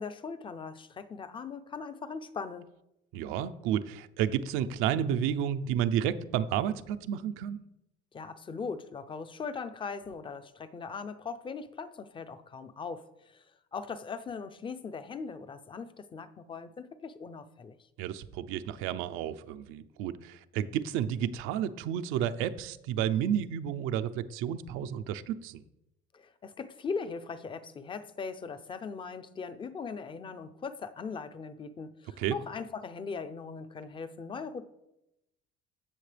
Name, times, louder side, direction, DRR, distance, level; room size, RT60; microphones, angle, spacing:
voice 1, 0.0-2.7 8.1-13.4 13.7-17.8 26.1-34.6, left 5 dB, 25° left, 11 dB, 0.6 m, -40 dB
voice 2, 3.1-7.6 18.0-25.6 32.2-32.4, right 9 dB, 80° right, 10 dB, 0.7 m, -31 dB
16.0 x 6.6 x 3.4 m, 0.90 s
cardioid pair, 130°, 21 cm